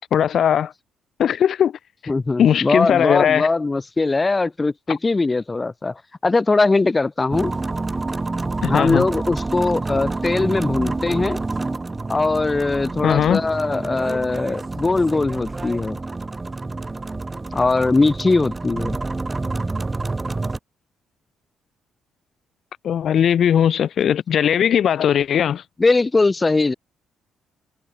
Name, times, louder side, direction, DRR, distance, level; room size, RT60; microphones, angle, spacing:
voice 1, 0.1-0.7 1.2-1.7 2.4-3.5 4.9-5.0 8.6-9.1 13.0-13.4 22.8-25.6, left 9 dB, 60° left, 2.2 m, -18 dB
voice 2, 2.1-7.5 8.6-11.4 12.1-16.0 17.5-19.0 25.8-26.7, left 3 dB, 25° left, 1.4 m, -20 dB
sound 1, 7.3-20.6, right 3 dB, 20° right, 2.0 m, -28 dB
cardioid pair, 90°, 0 cm